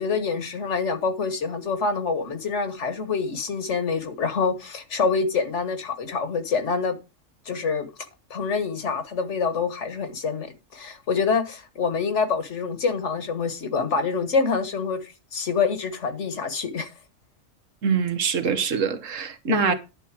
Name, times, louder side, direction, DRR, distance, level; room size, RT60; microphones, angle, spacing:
voice 1, 0.0-7.0 7.5-7.9 8.3-16.9 19.5-19.7, left 5 dB, 65° left, 1.7 m, -26 dB
voice 2, 17.8-19.7, right 6 dB, 80° right, 1.4 m, -24 dB
11.0 x 4.2 x 7.4 m
omnidirectional pair, 1.3 m